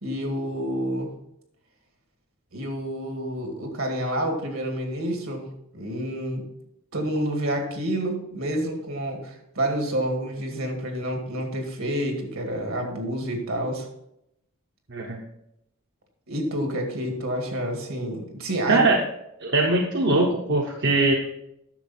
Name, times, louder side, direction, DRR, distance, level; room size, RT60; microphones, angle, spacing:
voice 1, 0.0-1.1 2.5-5.4 5.7-6.4 6.9-13.9 16.3-18.8, right 1 dB, 70° right, 3 dB, 2.1 m, -28 dB
voice 2, 14.9-15.2 18.7-19.0 19.4-21.1, right 2 dB, 50° right, 0 dB, 0.9 m, -21 dB
10.0 x 6.7 x 4.3 m, 0.80 s
head